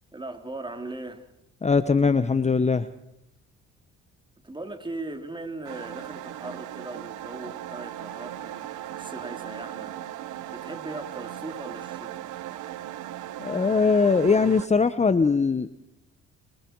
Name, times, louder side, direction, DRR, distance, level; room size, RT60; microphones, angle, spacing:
voice 1, 0.1-1.3 4.4-12.1, right 2 dB, 15° right, 6 dB, 3.5 m, -39 dB
voice 2, 1.6-2.9 13.4-15.7, left 4 dB, 20° left, 12 dB, 1.0 m, -21 dB
sound 1, 5.6-14.7, right 13 dB, 90° right, 1.3 m, -38 dB
26.0 x 25.5 x 4.7 m, 0.84 s
cardioid pair, 90°, 30 cm